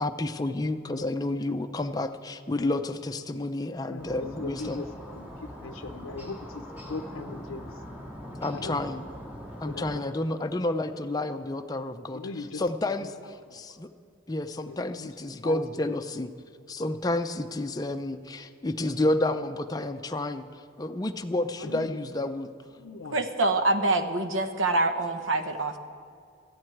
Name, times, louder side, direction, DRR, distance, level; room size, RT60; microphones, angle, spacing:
voice 1, 0.0-4.8 8.4-9.0 9.6-12.2 12.5-13.9 14.3-16.3 16.7-20.5 20.8-22.5, left 2 dB, 20° left, 7 dB, 0.5 m, -30 dB
voice 2, 3.8-7.8 8.5-8.8 9.5-10.5 11.7-11.8 12.1-12.7 13.0-13.6 14.5-15.9 16.8-17.0 21.5-22.1 22.7-23.2, left 3 dB, 90° left, 7 dB, 0.6 m, -40 dB
sound 1, 4.0-10.0, equal, 10° right, 1.8 m, -42 dB
voice 3, 23.1-25.8, right 2 dB, 80° right, 8 dB, 1.0 m, -25 dB
13.5 x 7.7 x 9.1 m, 2.4 s
head